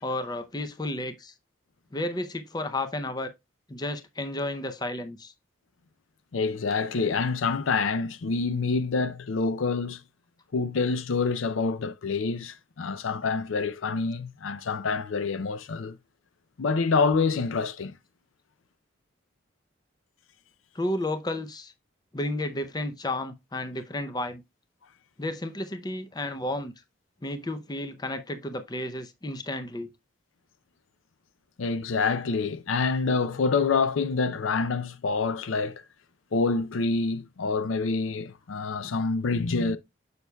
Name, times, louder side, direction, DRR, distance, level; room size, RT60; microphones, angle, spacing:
voice 1, 0.0-1.3 1.9-3.3 3.7-5.3 20.7-21.7 22.1-24.4 25.2-26.7 27.2-29.9, left 1 dB, 20° left, 0.5 m, -32 dB
voice 2, 6.3-10.0 10.5-16.0 16.6-17.9 31.6-35.8 36.3-39.8, left 4 dB, 90° left, 0.5 m, -27 dB
6.9 x 6.3 x 2.2 m
head